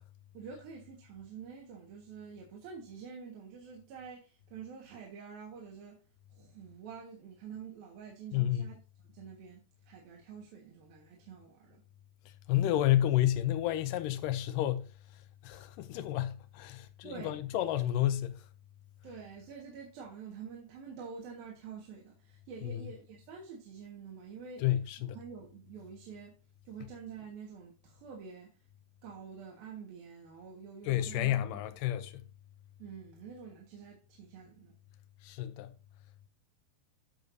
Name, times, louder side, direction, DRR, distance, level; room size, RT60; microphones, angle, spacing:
voice 1, 0.3-6.0 6.3-8.8 9.1-11.8 17.0-17.4 19.0-24.7 25.1-26.4 26.6-28.6 29.0-31.4 32.8-34.8, right 6 dB, 75° right, 3.4 m, -47 dB
voice 2, 8.3-8.7 12.3-14.9 15.4-18.4 22.6-22.8 24.6-25.2 30.9-32.2 35.2-35.7, left 13 dB, 80° left, 2.1 m, -30 dB
12.0 x 6.6 x 2.7 m
omnidirectional pair, 4.2 m